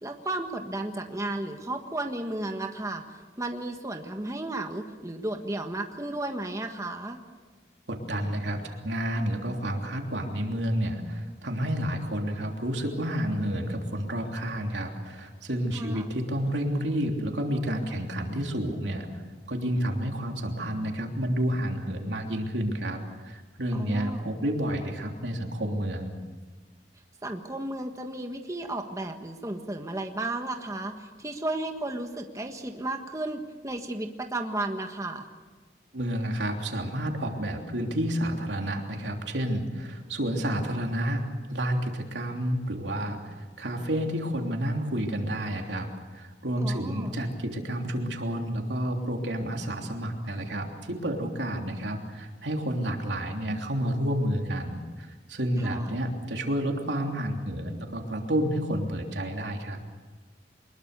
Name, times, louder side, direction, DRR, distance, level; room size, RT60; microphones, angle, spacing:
voice 1, 0.0-7.2 15.7-16.1 23.7-24.2 27.2-35.3 46.6-47.1 55.6-56.0, right 2 dB, 20° right, 4 dB, 1.5 m, -34 dB
voice 2, 7.9-19.2 19.5-26.1 35.9-59.8, equal, 90° right, 2 dB, 3.2 m, -30 dB
24.0 x 21.5 x 6.8 m, 1.4 s
head